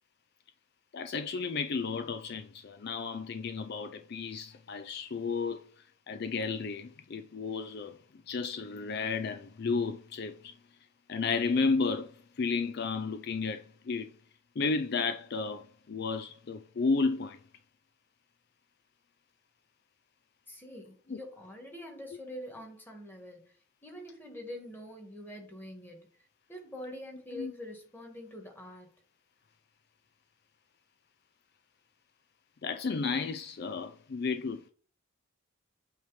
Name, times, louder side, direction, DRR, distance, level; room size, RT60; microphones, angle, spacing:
voice 1, 0.9-5.7 6.1-8.0 8.3-10.5 11.1-14.1 14.6-17.4 21.1-21.2 27.3-27.5 32.6-34.7, left 4 dB, 50° left, 0.4 m, -33 dB
voice 2, 20.5-23.4 23.8-26.0 26.5-28.9, left 1 dB, 10° left, 1.9 m, -45 dB
8.3 x 3.1 x 5.0 m
head